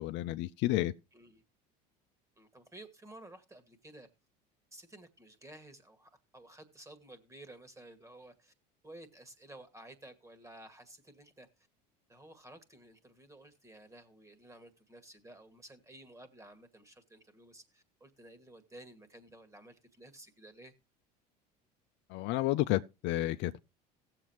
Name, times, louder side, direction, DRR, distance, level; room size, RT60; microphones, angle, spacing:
voice 1, 0.0-0.9 22.1-23.6, left 16 dB, 60° left, 0.6 m, -31 dB
voice 2, 1.1-1.4 2.4-4.1 4.7-8.5 8.8-11.7 12.1-20.7, right 1 dB, 15° right, 2.0 m, -54 dB
17.5 x 7.6 x 3.0 m
hypercardioid pair, 75°, 21 cm